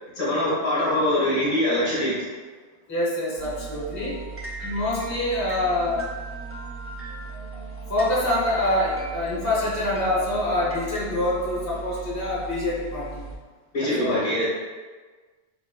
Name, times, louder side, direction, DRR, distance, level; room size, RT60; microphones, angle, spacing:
voice 1, 0.1-2.2 13.7-14.5, left 1 dB, 55° left, -8 dB, 1.4 m, -23 dB
voice 2, 2.9-4.2 4.6-6.1 7.9-13.3 13.8-14.2, left 1 dB, 20° left, -8 dB, 0.8 m, -25 dB
sound 1, 3.4-13.4, right 4 dB, 20° right, 0.4 m, -37 dB
4.3 x 2.9 x 2.3 m, 1.4 s
omnidirectional pair, 1.1 m